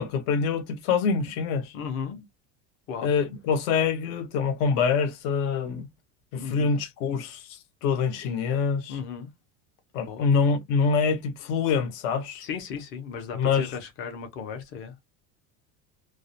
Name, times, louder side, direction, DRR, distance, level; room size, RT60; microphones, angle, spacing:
voice 1, 0.0-1.7 3.0-5.9 6.3-9.0 9.9-12.4 13.3-13.8, left 5 dB, 75° left, 0.8 m, -25 dB
voice 2, 1.7-2.2 2.9-3.1 6.4-6.8 8.9-9.3 10.0-10.3 12.4-14.9, left 6 dB, 35° left, 0.5 m, -35 dB
2.3 x 2.0 x 2.6 m
cardioid pair, 175°, 37 cm